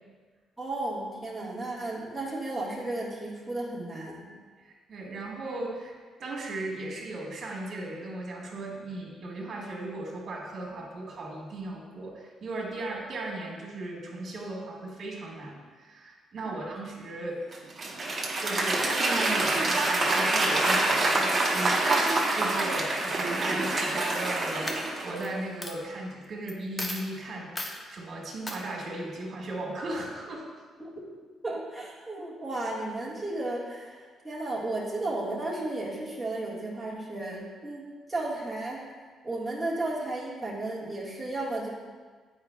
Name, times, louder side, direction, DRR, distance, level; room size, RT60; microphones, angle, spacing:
voice 1, 0.6-4.3 16.4-16.6 30.8-30.9 31.4-38.8 39.2-41.7, right 2 dB, 5° right, -8 dB, 1.7 m, -34 dB
voice 2, 4.6-5.9 6.2-17.4 18.4-30.4, right 2 dB, 55° right, -2 dB, 1.8 m, -37 dB
Applause / Crowd, 17.5-25.3, right 2 dB, 35° right, 1.2 m, -26 dB
Coin (dropping), 24.0-24.3 24.7-25.3 25.6-25.7 26.5-26.6 26.8-27.1 27.6-27.8 28.5-28.6, left 1 dB, 25° left, 0.7 m, -35 dB
8.7 x 4.9 x 2.3 m, 1.5 s
cardioid pair, 90°, 0 cm